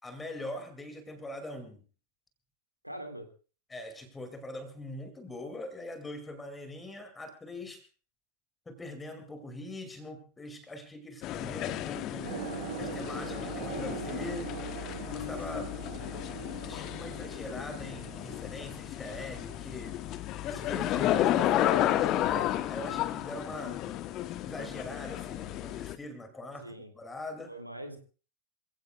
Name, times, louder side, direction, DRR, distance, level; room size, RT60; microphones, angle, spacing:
voice 1, 0.0-1.8 3.7-7.8 8.7-12.3 12.7-14.5 15.0-15.7 16.6-20.0 20.4-23.8 24.4-27.6, left 1 dB, 10° left, 7 dB, 2.5 m, -42 dB
voice 2, 2.8-3.3 15.5-15.7 26.6-26.9 27.5-28.0, right 1 dB, 90° right, 6 dB, 2.2 m, -42 dB
sound 1, 11.2-26.0, left 13 dB, 35° left, 1.0 m, -32 dB
sound 2, 12.2-20.2, right 6 dB, 65° right, 5.0 m, -42 dB
27.0 x 16.5 x 2.4 m, 0.38 s
figure-of-eight pair, 90°, 0 cm